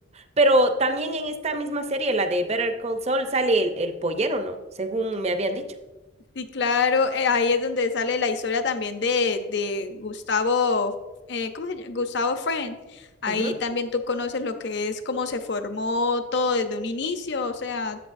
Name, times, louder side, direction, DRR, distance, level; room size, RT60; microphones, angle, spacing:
voice 1, 0.2-5.6 13.3-13.6, right 1 dB, 35° right, 8 dB, 0.6 m, -24 dB
voice 2, 6.4-11.0 11.3-18.1, left 4 dB, 60° left, 9 dB, 0.6 m, -26 dB
11.0 x 8.0 x 2.6 m, 1.1 s
head